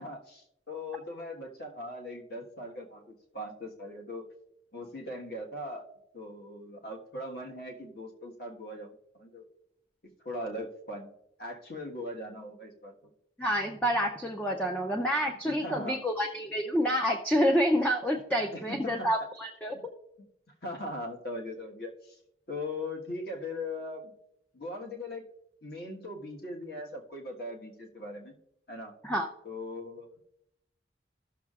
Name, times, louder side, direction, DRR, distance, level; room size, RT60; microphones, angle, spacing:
voice 1, 0.0-4.2 4.7-5.9 6.1-9.4 10.2-11.1 11.4-13.1 15.4-16.0 18.5-19.1 20.6-22.2 22.5-24.1 24.5-25.2 25.6-28.3 28.7-28.9 29.4-30.1, left 1 dB, 55° left, 1 dB, 1.4 m, -40 dB
voice 2, 13.4-19.8 29.0-29.3, equal, 10° left, 1 dB, 0.5 m, -28 dB
16.0 x 6.5 x 2.4 m, 0.78 s
head